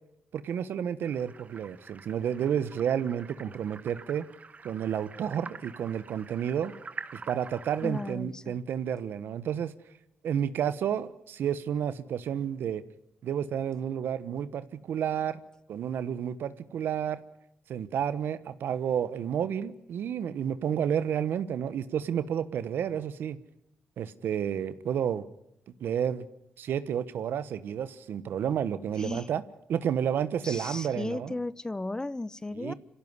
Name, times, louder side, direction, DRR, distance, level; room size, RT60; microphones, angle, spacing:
voice 1, 0.3-4.3 4.6-6.7 7.1-9.7 10.2-12.8 13.2-15.4 15.7-17.2 17.7-23.4 24.0-25.2 25.8-26.3 26.6-29.4 29.7-31.3 32.6-32.7, right 9 dB, 75° right, 1.1 m, -31 dB
sound 1, 1.0-8.1, right 4 dB, 40° right, 1.3 m, -47 dB
voice 2, 7.8-8.6 29.0-29.3 30.4-32.7, left 2 dB, 20° left, 0.8 m, -35 dB
26.0 x 16.5 x 9.7 m
supercardioid pair, 60°, 4 cm